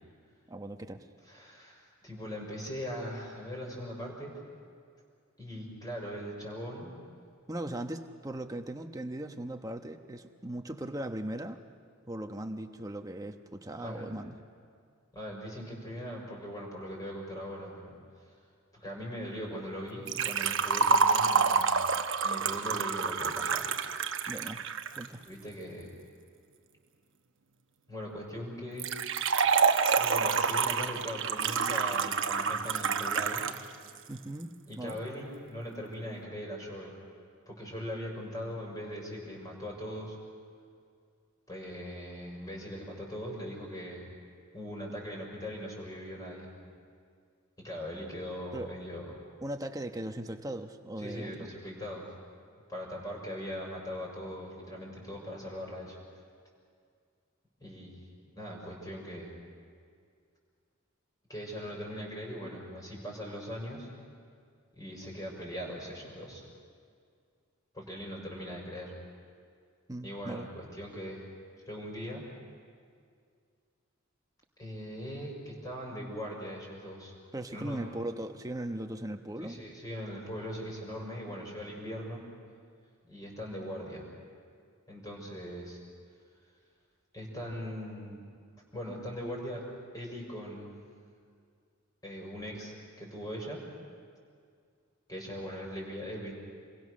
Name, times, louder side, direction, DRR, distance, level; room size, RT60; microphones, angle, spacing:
voice 1, 0.5-1.0 7.5-11.6 12.1-14.4 24.3-24.6 25.0-25.2 34.1-35.0 48.5-48.7 49.4-51.5 69.9-70.5 77.3-79.6, right 1 dB, 15° right, 6 dB, 1.1 m, -38 dB
voice 2, 1.2-4.3 5.4-6.9 13.8-14.1 15.1-18.0 18.2-18.3 18.7-21.8 22.2-23.7 25.2-25.9 27.9-28.9 29.9-33.4 34.7-37.0 37.5-40.2 41.5-44.1 44.5-46.5 47.6-49.1 51.0-52.1 52.7-56.0 57.6-58.1 58.4-59.3 61.3-63.9 64.7-66.4 67.7-68.9 70.0-71.3 71.7-72.2 74.6-77.1 77.5-77.8 79.4-82.2 83.0-84.1 84.9-85.8 87.1-88.2 88.7-89.6 89.9-90.7 92.0-93.6 95.1-96.3, equal, 15° left, -2 dB, 5.7 m, -40 dB
Liquid, 20.1-25.1 28.8-33.6 33.9-34.0 34.9-35.0, right 5 dB, 60° right, 1.1 m, -28 dB
28.0 x 22.5 x 6.4 m, 2.2 s
head